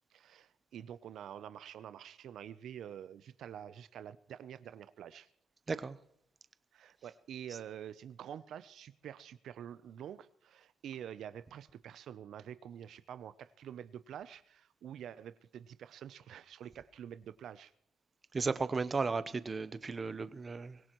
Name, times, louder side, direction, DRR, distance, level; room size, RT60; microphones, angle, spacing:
voice 1, 0.1-5.3 6.7-17.7, right 9 dB, 70° right, 0.6 m, -47 dB
voice 2, 18.3-20.8, right 4 dB, 35° right, 0.8 m, -35 dB
24.0 x 16.5 x 3.1 m
cardioid pair, 90°, 0 cm